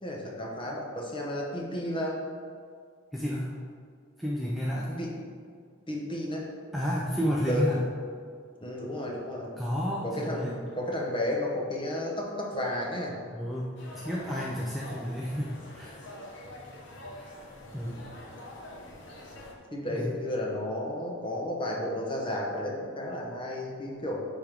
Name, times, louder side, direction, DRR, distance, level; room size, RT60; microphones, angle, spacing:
voice 1, 0.0-2.2 5.0-5.1 5.9-6.5 7.5-7.7 8.6-9.5 10.0-13.2 17.9-18.0 19.7-24.2, left 1 dB, 25° left, -2 dB, 1.0 m, -32 dB
voice 2, 3.1-3.6 4.2-5.1 6.7-7.8 9.6-10.6 13.3-16.1 17.1-17.4 17.7-18.1 19.9-20.2, equal, ahead, -6 dB, 0.5 m, -31 dB
sound 1, 13.8-19.5, left 1 dB, 55° left, 1.0 m, -45 dB
10.5 x 3.7 x 3.5 m, 2.1 s
head